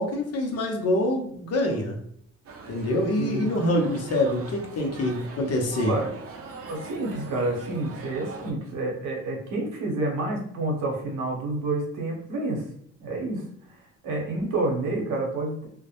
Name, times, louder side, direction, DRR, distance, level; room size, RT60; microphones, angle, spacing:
voice 1, 0.0-2.0 2.7-5.9, left 1 dB, 55° left, 2 dB, 0.7 m, -25 dB
sound 1, 2.4-8.5, right 3 dB, 50° right, 0.6 m, -41 dB
voice 2, 3.2-3.5 5.9-6.1 6.6-12.7 13.0-13.8 14.0-15.7, right 2 dB, 90° right, 0 dB, 0.8 m, -29 dB
2.2 x 2.0 x 2.8 m, 0.67 s
cardioid pair, 90°, 30 cm